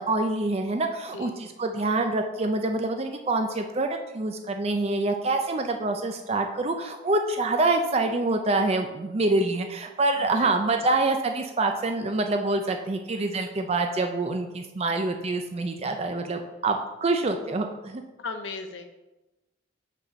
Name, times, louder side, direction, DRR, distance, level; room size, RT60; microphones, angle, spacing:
voice 1, 0.0-18.0, right 2 dB, 30° right, 5 dB, 0.4 m, -26 dB
voice 2, 10.2-10.9 18.2-18.9, left 4 dB, 70° left, 7 dB, 0.7 m, -38 dB
5.4 x 4.1 x 6.1 m, 1.0 s
head